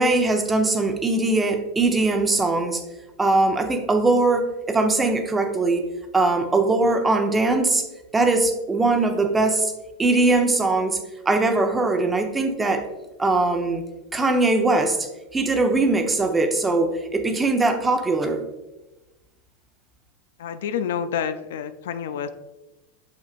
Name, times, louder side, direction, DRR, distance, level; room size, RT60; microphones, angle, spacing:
voice 1, 0.0-2.8 3.2-5.9 6.1-7.8 8.1-9.7 10.0-11.0 11.2-12.9 13.2-13.8 14.1-18.4, right 2 dB, 15° right, 5 dB, 0.8 m, -21 dB
voice 2, 20.4-22.3, left 7 dB, 75° left, 11 dB, 0.4 m, -28 dB
6.5 x 5.9 x 2.5 m, 1.0 s
hypercardioid pair, 105°, 0 cm